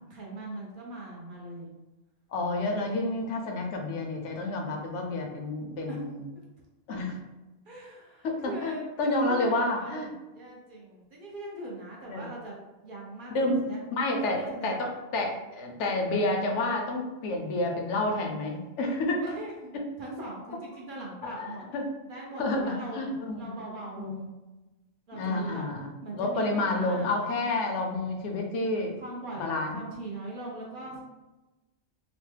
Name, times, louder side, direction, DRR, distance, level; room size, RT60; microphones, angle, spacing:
voice 1, 0.1-1.7 5.9-6.0 7.6-8.9 9.1-14.7 19.2-19.7 20.0-21.6 22.1-23.0 23.4-24.3 25.1-25.6 26.0-27.1 29.0-31.0, right 1 dB, 55° right, -3 dB, 0.7 m, -40 dB
voice 2, 2.3-6.2 6.9-7.2 8.2-8.7 9.0-10.1 12.1-12.3 13.3-13.6 13.9-19.2 21.2-21.8 22.4-23.5 24.0-24.2 25.1-25.9 26.1-29.0 29.4-29.8, left 2 dB, 80° left, 2 dB, 0.9 m, -29 dB
3.0 x 2.0 x 3.2 m, 1.1 s
omnidirectional pair, 1.2 m